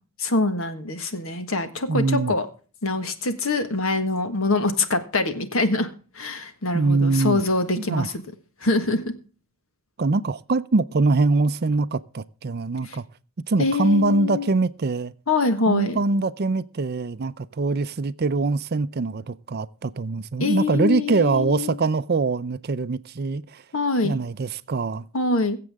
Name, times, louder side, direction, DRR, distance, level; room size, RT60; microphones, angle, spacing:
voice 1, 0.2-2.5 2.8-5.9 6.1-8.1 8.6-9.1 12.8-13.0 13.6-14.5 15.3-16.0 20.4-21.7 23.7-24.1 25.1-25.6, left 3 dB, 70° left, 1.5 m, -24 dB
voice 2, 1.9-2.4 6.7-7.4 7.8-8.1 10.0-13.1 13.5-15.1 15.7-23.6 24.0-25.1, right 3 dB, 45° right, 0.5 m, -23 dB
22.0 x 7.6 x 3.5 m
head